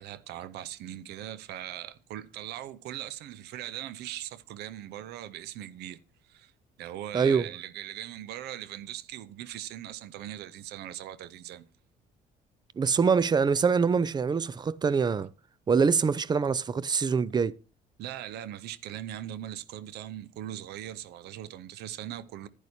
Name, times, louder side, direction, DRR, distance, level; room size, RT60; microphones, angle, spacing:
voice 1, 0.0-6.5 6.8-11.7 18.0-22.5, right 12 dB, 75° right, 0.6 m, -40 dB
voice 2, 7.1-7.5 12.8-15.3 15.7-17.5, right 5 dB, 25° right, 0.4 m, -24 dB
10.5 x 10.0 x 2.8 m
cardioid pair, 110°, 17 cm